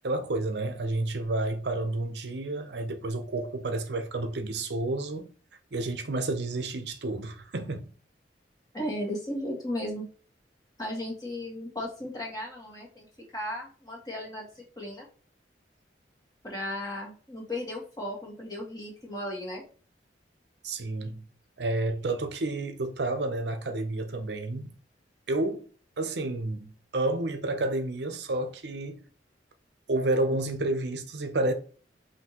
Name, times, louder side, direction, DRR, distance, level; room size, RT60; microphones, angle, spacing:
voice 1, 0.0-5.3 5.7-7.8 20.6-21.2 21.6-24.7 25.3-25.6 26.0-29.0 29.9-31.5, right 2 dB, 65° right, 0.6 m, -30 dB
voice 2, 8.7-10.0 10.8-13.1 13.3-15.1 16.4-19.6, left 1 dB, 20° left, 1.8 m, -35 dB
5.8 x 2.7 x 2.9 m
head